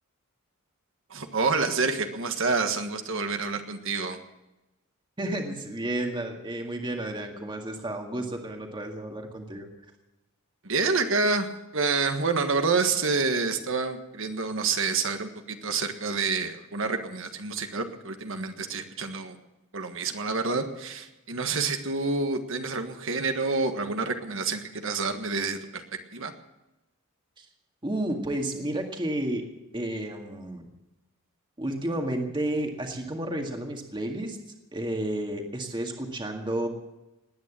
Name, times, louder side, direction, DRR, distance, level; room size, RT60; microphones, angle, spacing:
voice 1, 1.1-4.2 10.6-11.5 11.7-19.4 19.7-25.8 26.1-26.3, right 4 dB, 60° right, 6 dB, 1.6 m, -28 dB
voice 2, 5.2-9.7 27.4-27.5 27.8-29.5 29.7-30.7 31.6-34.4 34.7-36.7, right 1 dB, 20° right, 3 dB, 1.9 m, -31 dB
19.5 x 9.4 x 7.5 m, 0.99 s
head